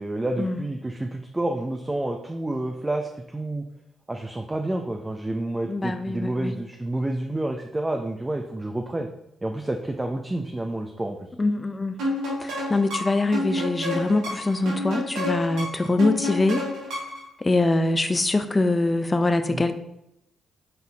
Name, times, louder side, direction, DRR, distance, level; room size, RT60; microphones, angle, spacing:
voice 1, 0.0-3.6 4.1-9.1 9.4-11.2 19.5-19.6, right 1 dB, 20° right, 4 dB, 0.6 m, -29 dB
voice 2, 5.6-6.5 11.4-12.0 12.4-16.6 17.4-19.7, left 2 dB, 30° left, 9 dB, 0.7 m, -23 dB
sound 1, 12.0-17.3, left 1 dB, 80° right, 2.3 m, -29 dB
6.7 x 4.0 x 4.1 m, 0.81 s
hypercardioid pair, 45°, 0 cm